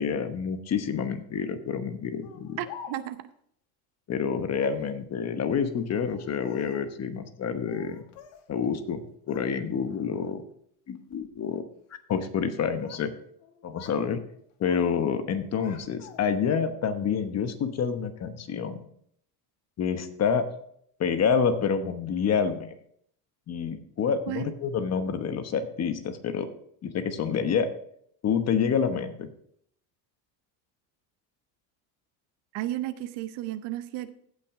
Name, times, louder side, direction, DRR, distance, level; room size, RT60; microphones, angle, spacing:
voice 1, 0.0-2.6 4.1-8.0 8.5-10.4 10.9-11.6 12.1-13.1 13.6-14.2 14.6-18.8 19.8-20.5 21.0-22.7 23.5-26.5 26.8-27.7 28.2-29.3, left 6 dB, 35° left, 9 dB, 1.1 m, -28 dB
Speech, 2.2-3.3 4.5-4.9 5.9-7.0 7.7-8.5 8.8-9.5 9.9-10.3 11.0-11.3 12.4-13.1 13.4-14.0 14.3-14.9 15.2-16.5, left 6 dB, 85° left, 1.5 m, -48 dB
voice 2, 2.6-3.3 24.3-24.5 32.5-34.1, right 14 dB, 70° right, 12 dB, 0.9 m, -33 dB
15.5 x 6.0 x 3.7 m, 0.66 s
cardioid pair, 125°, 44 cm